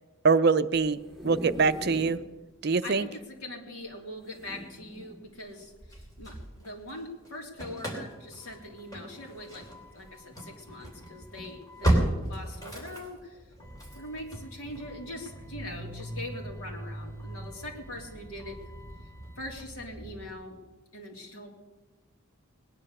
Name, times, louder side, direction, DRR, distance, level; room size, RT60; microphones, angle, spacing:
voice 1, 0.2-1.0 1.2-2.2 2.6-3.1, right 4 dB, 50° right, 13 dB, 0.5 m, -23 dB
sound 1, 0.9-2.3 2.7-2.8 3.0-3.1 4.2-5.2 5.8-6.0, equal, ahead, 2.9 m, -41 dB
voice 2, 2.8-9.7 9.9-12.0 12.3-13.4 13.9-18.6 19.4-20.6 20.9-21.5, left 1 dB, 90° left, 0 dB, 3.3 m, -42 dB
Engine starting / Slam, 5.6-7.0 7.3-20.3, right 1 dB, 15° left, 3.3 m, -35 dB
20.0 x 10.0 x 6.6 m, 1.1 s
head